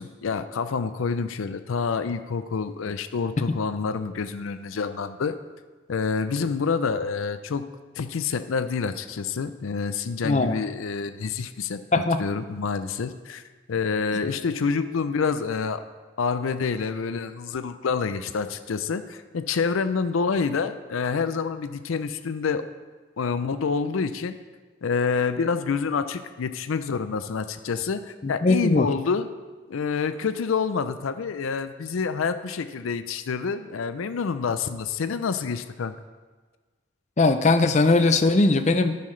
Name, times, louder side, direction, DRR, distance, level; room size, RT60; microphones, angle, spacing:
voice 1, 0.0-5.4 5.9-7.7 8.0-13.4 13.7-15.8 16.2-22.6 23.2-24.4 24.8-29.3 29.7-35.9, left 5 dB, 90° left, 11 dB, 0.5 m, -27 dB
voice 2, 10.2-10.7 11.9-12.2 28.2-28.9 37.2-39.0, left 3 dB, 35° left, 9 dB, 0.5 m, -20 dB
10.5 x 9.5 x 3.2 m, 1.3 s
head